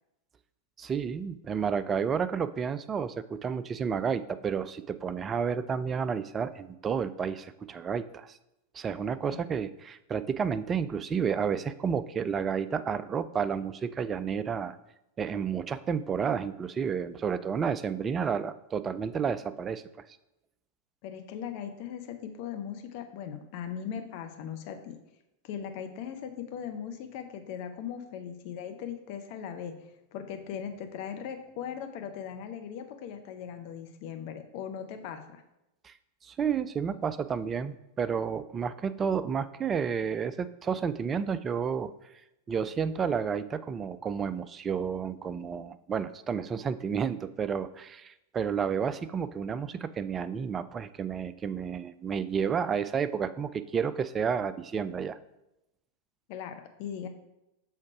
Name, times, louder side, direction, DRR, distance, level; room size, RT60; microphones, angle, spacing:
voice 1, 0.8-8.4 8.7-14.8 15.2-19.8 35.8-35.9 36.2-41.9 42.5-55.2, right 6 dB, 20° right, 14 dB, 0.3 m, -31 dB
voice 2, 21.0-25.0 25.4-29.8 30.1-35.4 56.3-57.1, left 8 dB, 45° left, 6 dB, 0.6 m, -39 dB
6.4 x 3.6 x 4.6 m, 0.89 s
figure-of-eight pair, 90°, 0 cm